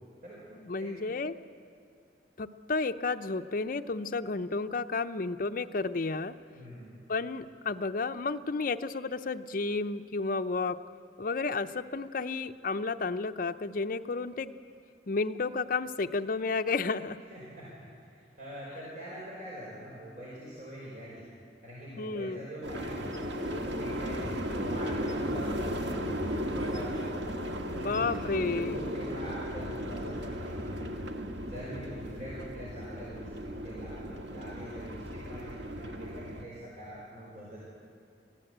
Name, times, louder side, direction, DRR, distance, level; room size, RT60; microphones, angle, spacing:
voice 1, 0.5-1.3 2.4-6.3 7.1-10.8 11.2-14.5 15.1-17.2 22.0-22.5 27.7-28.8, left 3 dB, 50° left, 8 dB, 0.6 m, -32 dB
voice 2, 6.5-7.0 17.3-21.2 21.6-26.2 26.4-27.0 27.7-31.0 31.4-37.6, equal, 45° right, -6 dB, 4.9 m, -44 dB
sound 1, 22.6-36.4, equal, 80° right, 1.6 m, -35 dB
22.5 x 15.5 x 8.0 m, 2.3 s
head